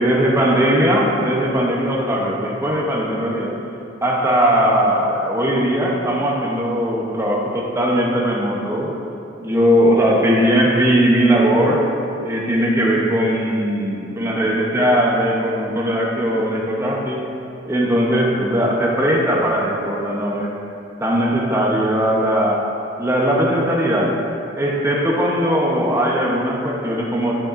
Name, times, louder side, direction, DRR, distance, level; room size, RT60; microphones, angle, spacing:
voice 1, 0.0-3.6 4.0-9.0 9.4-11.9 12.2-17.3 17.6-20.5 21.0-22.7 23.0-24.2 24.6-27.3, equal, 15° right, -3 dB, 0.8 m, -19 dB
9.8 x 5.8 x 2.5 m, 2.7 s
head